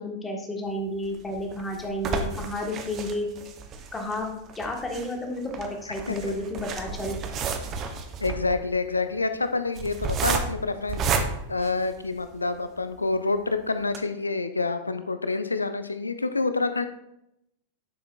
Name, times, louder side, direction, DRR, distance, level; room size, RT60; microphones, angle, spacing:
voice 1, 0.0-3.3 3.9-4.3 4.6-7.2, left 1 dB, 15° left, 1 dB, 1.6 m, -31 dB
sound 1, 1.0-12.4 13.0-13.1 13.3-13.4 13.8-14.0, right 5 dB, 30° right, 0.9 m, -32 dB
voice 2, 8.2-11.1 11.5-16.9, left 3 dB, 80° left, 10 dB, 0.5 m, -27 dB
9.6 x 7.2 x 2.5 m, 0.81 s
figure-of-eight pair, 90°, 0 cm